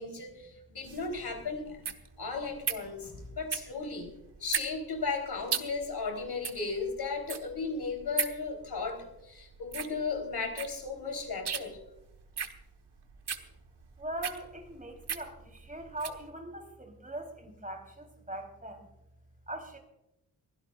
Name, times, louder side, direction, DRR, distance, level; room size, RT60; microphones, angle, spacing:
voice 1, 0.0-1.8 2.2-4.1 4.4-11.8, left 4 dB, 75° left, 4 dB, 3.7 m, -35 dB
sound 1, 0.8-16.2, right 7 dB, 85° right, 1.4 m, -38 dB
voice 2, 14.0-18.9 19.5-19.8, right 1 dB, 20° right, 3 dB, 3.5 m, -41 dB
23.0 x 16.5 x 2.4 m, 0.86 s
wide cardioid pair, 140°, 39 cm